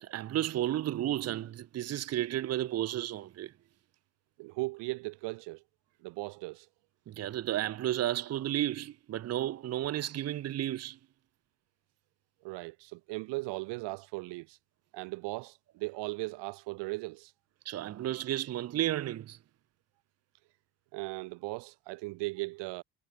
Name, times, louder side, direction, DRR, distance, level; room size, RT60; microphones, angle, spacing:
voice 1, 0.0-3.5 7.1-11.0 17.7-19.4, right 13 dB, 35° right, 0.7 m, -32 dB
voice 2, 4.4-5.6 6.0-6.7 12.4-14.6 14.9-17.3 20.9-22.8, right 24 dB, 70° right, 0.8 m, -38 dB
cardioid pair, 120°, 44 cm